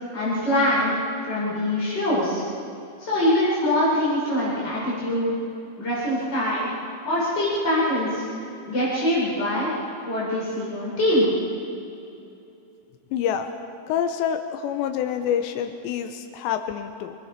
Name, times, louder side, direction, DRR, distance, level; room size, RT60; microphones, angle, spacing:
voice 1, 0.1-0.9 1.2-2.4 3.0-5.3 5.8-6.7 7.0-8.3 8.7-9.7 10.0-11.3, left 1 dB, 20° left, -7 dB, 7.6 m, -23 dB
voice 2, 13.1-13.5 13.9-17.2, left 9 dB, 80° left, 6 dB, 3.2 m, -27 dB
29.0 x 20.0 x 6.0 m, 2.8 s
omnidirectional pair, 5.1 m